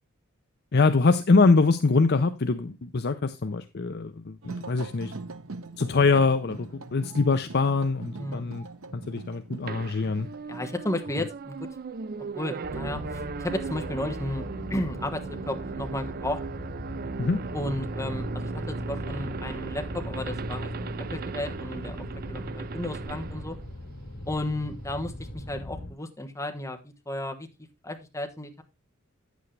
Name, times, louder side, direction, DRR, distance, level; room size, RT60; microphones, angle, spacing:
voice 1, 0.7-5.1 5.8-8.6 8.9-10.3 17.2-17.4, left 4 dB, 50° left, 0.6 m, -23 dB
sound 1, 4.4-10.7, right 3 dB, 75° right, 0.9 m, -41 dB
voice 2, 8.2-8.5 10.5-11.6 12.3-16.4 17.5-22.0 22.3-23.6 24.3-26.8 27.1-27.5 27.8-28.6, left 1 dB, 15° left, 1.4 m, -33 dB
sound 2, 9.7-24.4, right 5 dB, 45° right, 0.4 m, -38 dB
sound 3, 12.6-25.9, left 1 dB, 90° left, 2.1 m, -38 dB
9.5 x 8.2 x 3.2 m
head